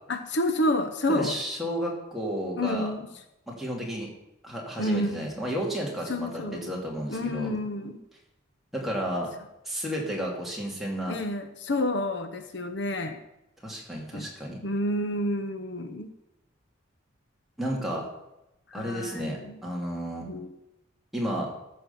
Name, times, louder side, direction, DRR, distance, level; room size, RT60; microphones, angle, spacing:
voice 1, 0.1-1.4 2.5-3.1 4.8-5.2 6.1-6.7 7.1-8.0 11.1-13.2 14.1-14.3 14.6-16.1 18.7-19.6 20.3-20.6, left 1 dB, 65° left, 8 dB, 0.9 m, -29 dB
voice 2, 1.1-2.9 3.5-4.1 4.4-7.5 8.7-9.3 9.6-11.2 13.6-14.6 17.6-18.1 18.7-20.3 21.1-21.5, equal, ahead, -3 dB, 2.6 m, -32 dB
14.0 x 6.4 x 6.9 m, 0.90 s
head